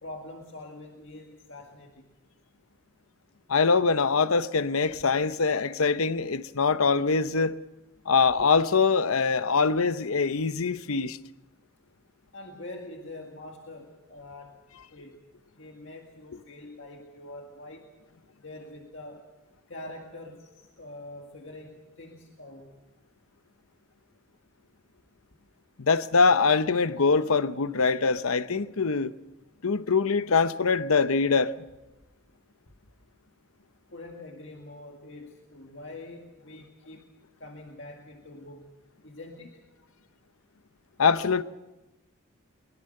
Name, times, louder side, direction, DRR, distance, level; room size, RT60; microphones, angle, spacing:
voice 1, 0.0-2.1 12.3-14.6 14.9-15.2 15.5-18.0 18.4-19.3 19.7-22.8 33.9-37.1 37.4-38.7 39.0-39.6, left 2 dB, 55° left, 2.0 m, -44 dB
voice 2, 3.5-7.6 8.1-11.2 25.8-29.1 29.6-31.5 41.0-41.4, left 4 dB, 80° left, 0.8 m, -23 dB
23.0 x 21.0 x 6.6 m
head